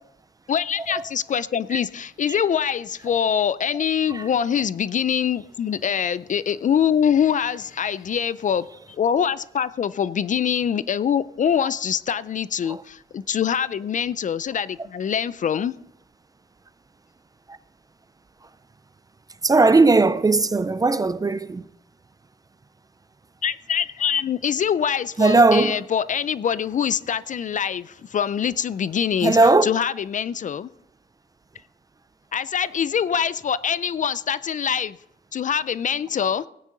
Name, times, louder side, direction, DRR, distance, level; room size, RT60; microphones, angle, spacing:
voice 1, 0.5-15.7 23.4-30.7 32.3-35.0 35.3-36.4, left 8 dB, 45° left, 0.4 m, -24 dB
voice 2, 19.4-21.6 25.2-25.8 29.2-29.7, right 3 dB, 20° right, 0.4 m, -18 dB
17.5 x 9.3 x 3.9 m
cardioid pair, 120°, 19 cm